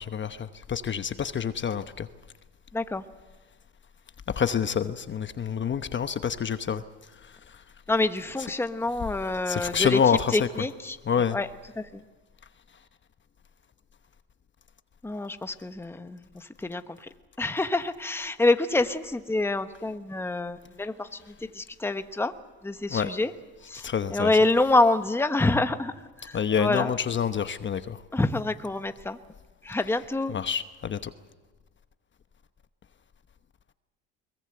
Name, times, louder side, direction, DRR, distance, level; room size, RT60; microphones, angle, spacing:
voice 1, 0.0-2.1 4.3-6.8 7.2-7.6 8.4-8.5 9.4-10.7 11.1-11.4 22.9-23.1 23.7-24.5 26.3-28.0 29.8-30.0 30.3-31.1, left 7 dB, 35° left, 1.1 m, -28 dB
voice 2, 2.7-3.0 7.9-10.0 10.3-11.0 11.3-11.5 11.8-12.0 15.0-17.1 17.4-22.3 22.6-23.3 23.7-25.9 26.2-26.9 28.1-29.2 29.6-30.3, left 2 dB, 5° left, 1.1 m, -27 dB
22.0 x 21.5 x 7.9 m
supercardioid pair, 90°, 33 cm